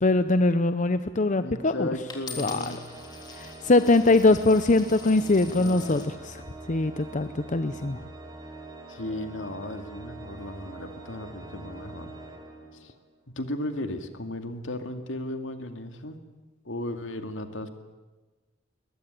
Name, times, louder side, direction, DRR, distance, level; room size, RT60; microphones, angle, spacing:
voice 1, 0.0-1.9 2.4-2.6 3.4-6.0 6.7-8.0, left 2 dB, 40° left, 11 dB, 0.7 m, -22 dB
voice 2, 1.4-2.8 5.0-5.2 5.6-6.1 8.9-12.1 12.8-12.9 13.4-16.2 16.6-17.7, left 1 dB, 75° left, 7 dB, 2.3 m, -35 dB
Coin (dropping), 2.1-6.1 6.8-7.2, left 5 dB, 20° left, 3.6 m, -44 dB
Organ, 2.3-13.1, right 2 dB, 20° right, 3.6 m, -44 dB
21.5 x 21.5 x 9.1 m, 1.2 s
head